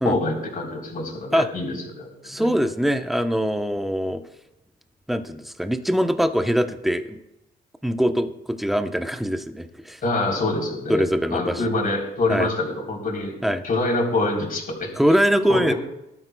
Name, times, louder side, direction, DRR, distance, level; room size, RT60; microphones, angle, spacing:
voice 1, 0.0-2.1 2.4-2.5 10.0-11.1 11.3-13.4 13.6-14.9 15.5-15.7, left 2 dB, 45° left, 0 dB, 3.7 m, -25 dB
voice 2, 2.2-4.2 5.1-7.2 7.8-10.0 10.9-11.6 12.3-12.5 13.4-13.6 15.0-15.7, equal, ahead, 7 dB, 0.8 m, -22 dB
19.0 x 12.5 x 2.3 m, 0.89 s
cardioid pair, 90°, 20 cm